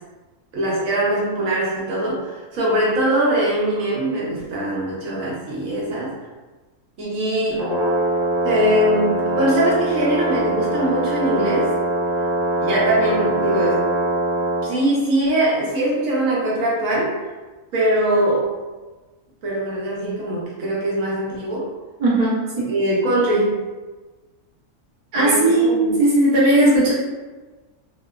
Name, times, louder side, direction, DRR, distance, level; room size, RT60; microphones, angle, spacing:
voice 1, 0.5-6.1 7.0-7.7 8.4-11.7 12.6-13.9 14.6-17.2 17.7-18.6 19.4-21.7 22.7-23.6 25.2-25.9, right 1 dB, 65° right, -5 dB, 1.0 m, -22 dB
Brass instrument, 7.5-14.7, right 1 dB, ahead, 0.9 m, -22 dB
voice 2, 22.0-22.7 25.1-26.9, right 1 dB, 50° right, -7 dB, 0.4 m, -17 dB
2.7 x 2.1 x 2.2 m, 1.3 s
omnidirectional pair, 1.6 m